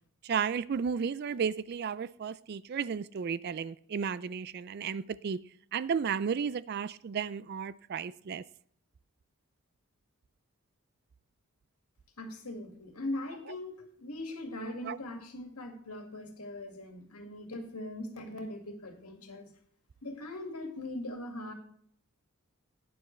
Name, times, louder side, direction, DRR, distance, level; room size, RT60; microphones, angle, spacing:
voice 1, 0.2-5.4 5.7-8.4 14.8-15.0, right 6 dB, 45° right, 0.3 m, -33 dB
voice 2, 12.2-19.5 20.0-21.5, left 1 dB, 85° left, 2.0 m, -40 dB
12.5 x 9.4 x 3.2 m
head